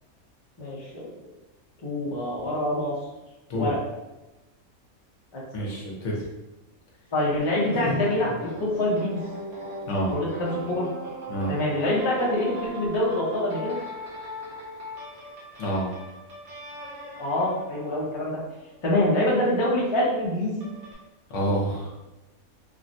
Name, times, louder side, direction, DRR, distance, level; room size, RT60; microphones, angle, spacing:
voice 1, 0.6-1.1 1.8-2.9 3.5-3.8 5.3-5.4 7.1-8.3 8.6-9.2 10.1-10.9 11.5-13.7 17.2-18.4 18.8-20.7, left 1 dB, 30° left, -5 dB, 0.5 m, -25 dB
voice 2, 5.5-6.2 7.7-8.0 9.9-10.1 11.3-11.5 15.6-15.9 21.3-21.9, equal, 65° left, -3 dB, 1.0 m, -28 dB
sound 1, 7.4-18.8 20.6-20.9, right 1 dB, 60° right, 1.2 m, -38 dB
3.4 x 2.1 x 2.6 m, 1.0 s
omnidirectional pair, 1.5 m